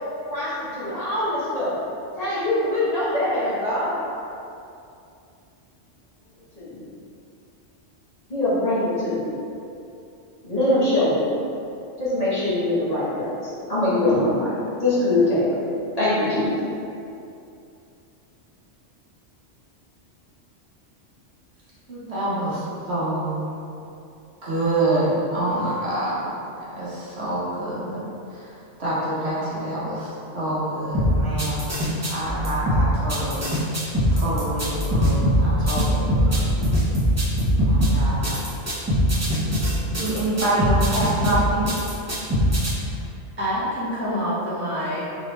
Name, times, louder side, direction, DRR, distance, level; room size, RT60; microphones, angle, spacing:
voice 1, 0.3-1.7 2.1-4.0 6.6-6.8 8.3-9.2 10.4-11.3 12.0-14.5 14.8-15.5 15.9-16.5, left 1 dB, 35° left, -12 dB, 1.2 m, -23 dB
voice 2, 21.9-23.4 24.4-26.3 26.6-31.7 32.0-33.5 34.1-36.5 37.6-38.4 39.9-41.7, right 1 dB, 60° right, -9 dB, 1.1 m, -26 dB
sound 1, 30.9-42.7, equal, 20° right, 0.4 m, -21 dB
voice 3, 43.4-45.0, equal, 10° left, -12 dB, 0.8 m, -27 dB
3.7 x 3.1 x 3.1 m, 2.6 s
omnidirectional pair, 1.3 m